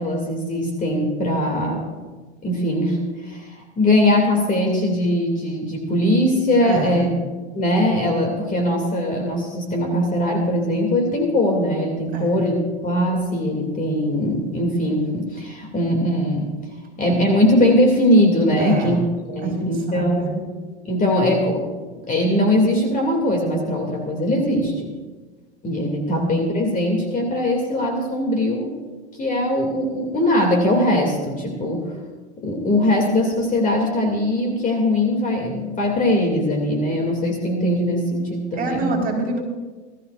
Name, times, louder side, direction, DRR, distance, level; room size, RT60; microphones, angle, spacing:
voice 1, 0.0-1.8 2.4-3.0 3.3-7.1 7.5-12.6 12.8-16.5 17.0-19.0 19.3-20.5 20.8-21.7 22.1-24.9 25.6-28.7 29.2-31.9 32.4-38.9, left 1 dB, 25° left, 1 dB, 2.6 m, -21 dB
voice 2, 6.6-7.1 12.1-12.4 18.6-19.0 19.4-20.4 26.1-26.2 38.6-39.4, right 3 dB, 25° right, 0 dB, 4.5 m, -26 dB
20.5 x 14.0 x 2.6 m, 1.3 s
hypercardioid pair, 100°, 33 cm